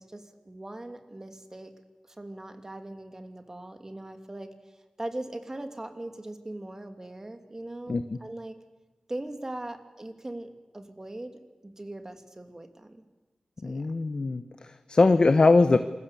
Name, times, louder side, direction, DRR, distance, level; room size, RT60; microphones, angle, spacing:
voice 1, 0.0-1.7 2.1-8.6 9.1-13.0 13.6-13.9, right 1 dB, 25° right, 6 dB, 2.8 m, -40 dB
voice 2, 13.6-15.8, left 3 dB, 50° left, 9 dB, 1.1 m, -21 dB
27.5 x 21.0 x 8.4 m, 1.2 s
wide cardioid pair, 80°, 2 cm